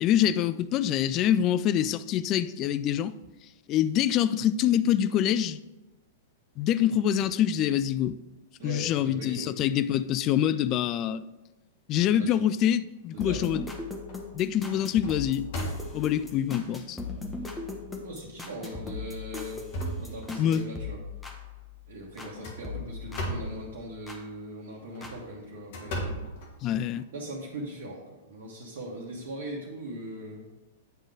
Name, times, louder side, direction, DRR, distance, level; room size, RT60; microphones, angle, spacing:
voice 1, 0.0-3.1 3.7-5.6 6.6-8.2 8.6-11.2 11.9-13.6 14.3-15.5 15.9-17.0 20.4-20.6 26.6-27.0, left 10 dB, 35° left, 0.3 m, -25 dB
voice 2, 8.6-9.5 12.2-12.5 13.1-13.5 18.0-19.6 20.0-21.0 21.9-26.3 27.1-30.5, right 1 dB, 60° right, 1.4 m, -40 dB
sound 1, 13.0-13.6 14.1-14.3 14.7-16.3 16.9-17.0 17.5-17.6 18.5-18.8 19.2-20.7 22.2-23.7 24.8-27.0, equal, 50° left, 1.6 m, -37 dB
sound 2, 13.2-22.3 22.6-24.2 25.0-25.1, left 3 dB, 10° left, 1.1 m, -39 dB
9.1 x 3.8 x 4.9 m
figure-of-eight pair, 105°, 0 cm